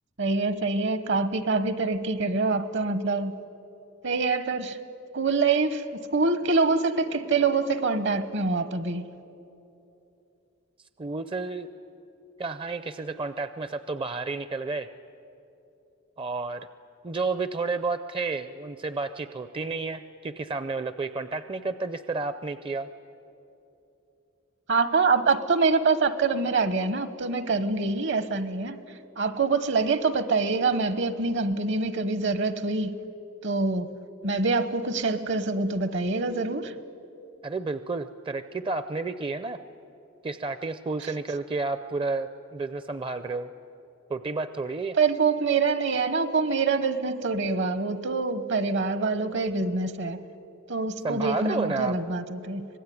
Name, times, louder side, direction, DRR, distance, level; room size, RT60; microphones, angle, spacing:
voice 1, 0.2-3.4 4.0-4.8 5.1-9.0 24.7-28.8 29.2-33.0 33.4-33.9 34.2-36.7 44.9-50.2 50.7-52.7, right 4 dB, 60° right, 1.1 m, -25 dB
voice 2, 11.0-11.7 12.4-14.9 16.2-16.7 17.0-22.9 37.4-39.6 40.2-43.5 44.1-45.0 51.0-52.0, right 3 dB, 25° right, 0.5 m, -31 dB
25.5 x 19.5 x 9.4 m
head